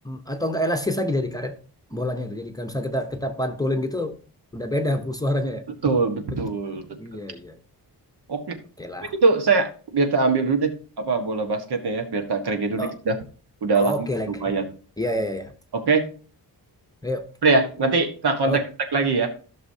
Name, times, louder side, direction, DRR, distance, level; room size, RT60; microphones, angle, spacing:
voice 1, 0.0-1.6 1.9-4.2 4.5-5.6 7.0-7.6 8.8-9.1 12.8-12.9 13.7-14.4 15.0-15.5 17.0-17.3 18.5-18.7, left 1 dB, 10° left, 5 dB, 0.8 m, -27 dB
voice 2, 5.8-6.9 8.3-8.6 9.2-13.2 13.6-13.9 14.3-14.7 15.7-16.1 17.4-18.6 18.9-19.3, right 4 dB, 70° right, 6 dB, 1.5 m, -22 dB
15.0 x 6.2 x 2.8 m, 0.39 s
wide cardioid pair, 165°, 41 cm